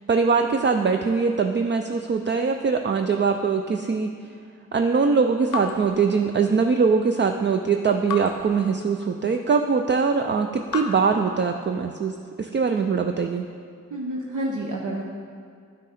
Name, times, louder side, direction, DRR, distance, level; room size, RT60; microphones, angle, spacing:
voice 1, 0.1-4.1 4.7-13.5, right 5 dB, 35° right, 5 dB, 0.4 m, -22 dB
Raindrop / Drip, 5.5-6.9 8.1-9.5 10.7-12.1, left 6 dB, 85° left, 0.7 m, -36 dB
voice 2, 13.9-15.0, right 1 dB, 70° right, -1 dB, 0.9 m, -29 dB
11.5 x 6.4 x 4.2 m, 2.2 s
wide cardioid pair, 85°, 31 cm